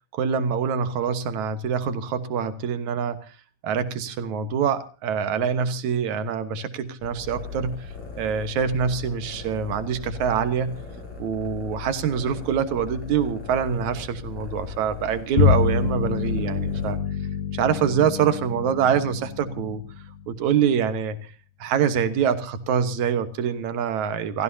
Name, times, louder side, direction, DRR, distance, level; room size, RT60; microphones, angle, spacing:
voice 1, 0.1-3.2 3.6-10.7 11.2-17.0 17.5-19.8 20.3-21.2 21.6-24.4, right 7 dB, 65° right, 10 dB, 2.5 m, -25 dB
sound 1, 7.0-16.9, left 5 dB, 55° left, 7.3 m, -38 dB
Bowed string instrument, 15.4-21.0, left 7 dB, 90° left, 3.0 m, -26 dB
29.0 x 15.0 x 2.8 m, 0.36 s
omnidirectional pair, 3.7 m